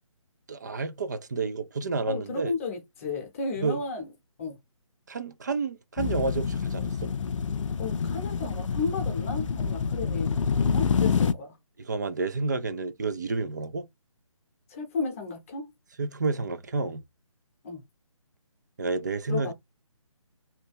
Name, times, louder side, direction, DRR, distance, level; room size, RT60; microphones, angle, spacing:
voice 1, 0.5-2.5 3.6-3.8 5.1-7.1 11.8-13.8 16.0-17.0 18.8-19.5, right 4 dB, 35° right, 0.3 m, -30 dB
voice 2, 2.1-4.1 4.4-4.6 7.8-11.6 14.7-15.7 17.6-17.8 19.3-19.5, left 4 dB, 25° left, 0.8 m, -33 dB
sound 1, 6.0-11.3, left 6 dB, 65° left, 0.4 m, -27 dB
2.8 x 2.2 x 3.4 m
figure-of-eight pair, 155°, 17 cm